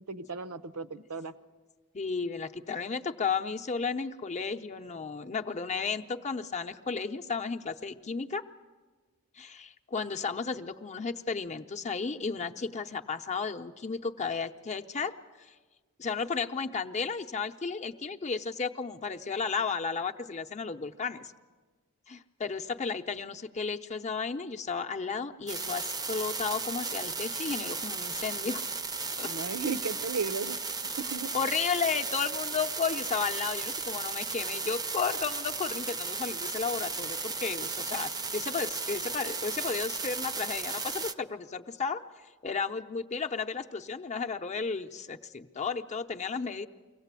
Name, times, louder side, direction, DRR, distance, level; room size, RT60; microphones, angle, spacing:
voice 1, 0.1-1.3 29.2-30.6 31.0-31.3, right 5 dB, 80° right, 13 dB, 0.8 m, -35 dB
voice 2, 1.9-8.5 9.4-15.5 16.0-21.3 22.1-28.6 29.2-29.3 31.3-42.0 42.4-46.7, left 5 dB, 30° left, 6 dB, 0.7 m, -33 dB
sound 1, 25.5-41.1, right 4 dB, 15° right, 0.6 m, -35 dB
24.0 x 17.0 x 8.2 m, 1.4 s
head